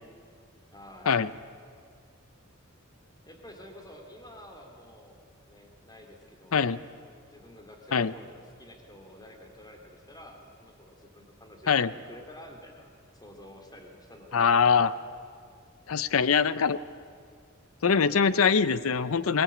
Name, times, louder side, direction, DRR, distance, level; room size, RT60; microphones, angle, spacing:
voice 1, 0.7-1.2 3.3-6.7 7.2-12.9 13.1-14.6, left 1 dB, 20° left, 2 dB, 2.8 m, -50 dB
voice 2, 14.3-14.9 15.9-16.8 17.8-19.4, left 6 dB, 80° left, 16 dB, 0.6 m, -23 dB
23.0 x 19.5 x 8.6 m, 2.1 s
head